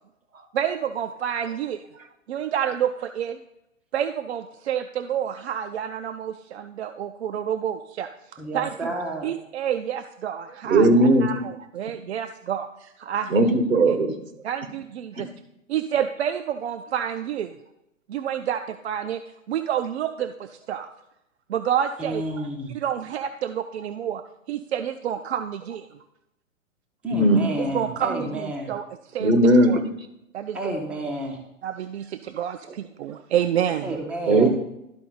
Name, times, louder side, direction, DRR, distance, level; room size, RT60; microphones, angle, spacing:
voice 1, 0.5-1.8 2.3-3.4 3.9-8.1 8.5-8.8 9.2-10.9 11.2-13.6 13.9-14.0 14.4-15.3 15.7-17.5 18.1-19.2 19.5-20.9 21.5-22.2 22.7-24.2 24.5-25.9 27.6-29.3 29.7-29.8 30.3-30.8 31.6-34.0, right 9 dB, 55° right, 7 dB, 0.5 m, -28 dB
voice 2, 8.4-9.3 22.0-22.8 27.0-28.7 30.5-31.4 33.8-34.5, right 1 dB, 5° right, 0 dB, 0.4 m, -30 dB
voice 3, 10.7-11.3 13.3-14.2 27.1-27.5 29.2-29.8 34.3-34.5, right 1 dB, 80° right, 7 dB, 1.4 m, -17 dB
12.5 x 4.1 x 3.9 m, 0.85 s
figure-of-eight pair, 115°, 39 cm